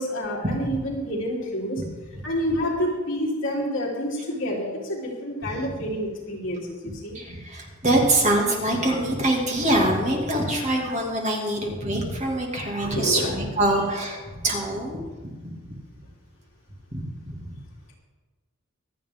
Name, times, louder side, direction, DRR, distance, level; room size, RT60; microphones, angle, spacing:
voice 1, 0.0-1.8 2.2-7.2 12.8-13.3, equal, 60° left, -4 dB, 3.5 m, -28 dB
voice 2, 6.8-15.1 15.4-15.8 16.9-17.4, right 1 dB, 35° right, 0 dB, 2.3 m, -25 dB
24.5 x 8.5 x 3.7 m, 1.3 s
head